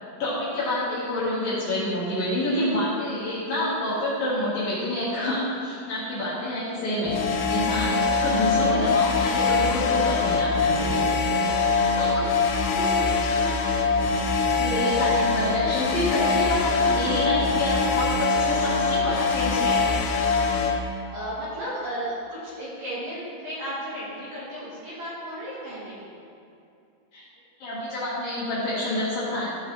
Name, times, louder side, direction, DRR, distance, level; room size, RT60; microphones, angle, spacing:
voice 1, 0.2-7.2 7.5-11.0 11.4-12.3 12.7-13.4 14.2-14.3 14.6-20.0 27.1-27.3 27.6-29.5, left 1 dB, 60° left, -9 dB, 2.6 m, -28 dB
sound 1, 7.1-20.8, left 4 dB, 80° left, 3.3 m, -23 dB
voice 2, 20.8-26.1, equal, 60° right, -9 dB, 2.5 m, -34 dB
15.0 x 5.2 x 3.2 m, 2.6 s
omnidirectional pair, 5.7 m